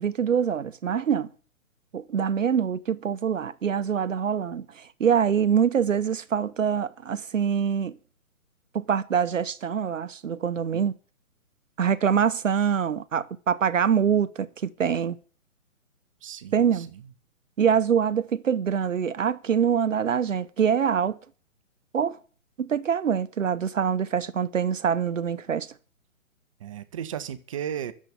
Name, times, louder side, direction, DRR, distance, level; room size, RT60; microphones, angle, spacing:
voice 1, 0.0-1.3 1.9-8.0 8.7-10.9 11.8-15.2 16.5-16.9 17.6-21.2 21.9-22.2 22.6-25.7, right 7 dB, 65° right, 0.7 m, -24 dB
voice 2, 16.2-17.1 26.6-27.9, right 9 dB, 25° right, 0.7 m, -35 dB
12.0 x 7.4 x 8.8 m
figure-of-eight pair, 130°, 41 cm